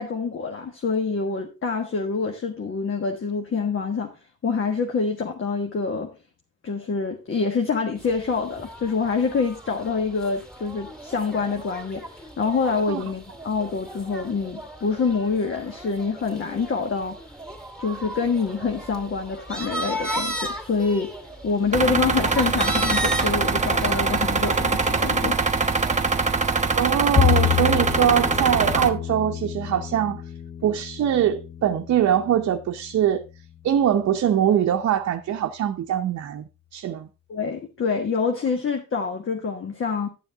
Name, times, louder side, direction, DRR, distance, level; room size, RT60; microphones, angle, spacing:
voice 1, 0.0-4.1 4.4-6.1 6.6-17.2 17.8-21.1 21.4-25.4 37.3-40.1, left 4 dB, 45° left, 1.5 m, -26 dB
sound 1, 8.0-26.8, right 1 dB, ahead, 2.6 m, -36 dB
sound 2, 21.7-28.9, right 4 dB, 25° right, 1.0 m, -23 dB
voice 2, 26.7-30.2 30.6-33.2 33.6-36.4 36.7-37.1, right 10 dB, 60° right, 0.8 m, -22 dB
Bowed string instrument, 27.2-33.5, left 9 dB, 20° left, 0.4 m, -28 dB
11.5 x 7.1 x 3.5 m
cardioid pair, 90°, 30 cm